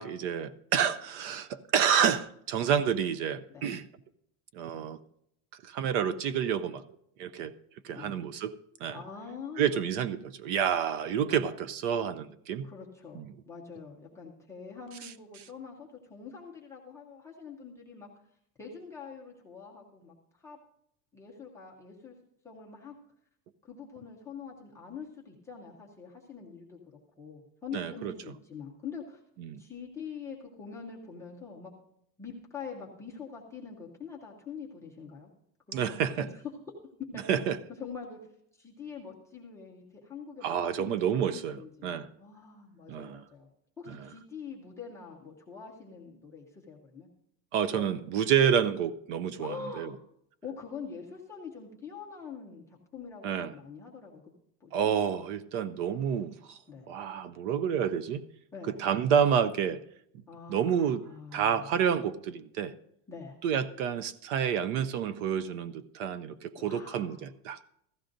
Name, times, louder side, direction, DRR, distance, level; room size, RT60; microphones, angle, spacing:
voice 1, 0.0-3.8 4.5-5.0 5.6-6.8 7.2-7.5 7.8-9.0 9.6-12.6 13.2-13.3 27.7-28.1 29.4-29.6 35.7-36.3 37.3-37.6 40.4-42.1 42.9-43.2 43.9-44.0 47.5-49.9 53.2-53.5 54.7-56.6 56.9-58.2 58.7-59.8 60.5-61.0 61.3-62.7 63.4-67.6, right 8 dB, 50° right, 0.5 m, -29 dB
voice 2, 8.9-9.8 12.6-18.1 18.6-20.6 21.1-22.2 22.4-23.0 23.6-26.8 27.2-29.2 29.6-31.7 32.2-35.3 35.7-36.3 37.1-37.2 37.8-38.2 38.5-43.5 43.8-47.1 47.7-47.9 49.4-50.0 50.4-54.2 54.6-54.9 56.7-57.2 58.5-58.8 60.3-61.8 63.1-63.4 66.6-67.2, left 6 dB, 5° left, 0.4 m, -44 dB
15.5 x 13.0 x 2.5 m
supercardioid pair, 165°, 50 cm